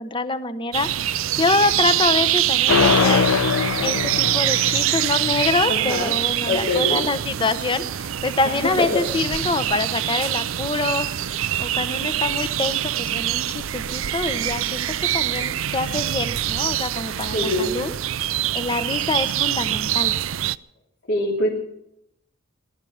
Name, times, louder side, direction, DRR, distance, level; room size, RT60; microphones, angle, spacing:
voice 1, 0.0-3.3 3.8-17.9 18.2-20.1, left 3 dB, 25° left, 11 dB, 0.9 m, -26 dB
sound 1, 0.7-20.6, right 12 dB, 75° right, 0.5 m, -24 dB
sound 2, 2.7-5.6, left 5 dB, 85° left, 0.6 m, -22 dB
voice 2, 5.7-6.1 6.4-7.0 8.6-9.0 17.3-17.7 21.1-21.5, left 2 dB, 65° left, -5 dB, 3.5 m, -23 dB
19.5 x 12.5 x 5.7 m, 0.79 s
head